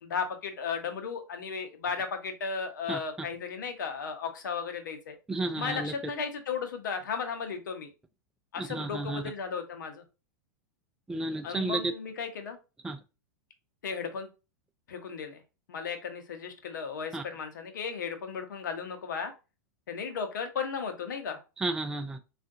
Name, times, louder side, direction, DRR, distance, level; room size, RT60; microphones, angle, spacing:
voice 1, 0.0-5.2 5.6-7.9 8.5-10.0 11.4-12.6 13.8-14.3 14.9-15.4 15.7-19.3 19.9-21.4, left 6 dB, 85° left, 0.9 m, -35 dB
voice 2, 5.3-5.9 8.6-9.2 11.1-11.9 12.8-13.0 17.1-17.2 21.6-22.2, right 2 dB, 5° right, 0.3 m, -32 dB
3.5 x 2.5 x 2.6 m
hypercardioid pair, 120°, 10 cm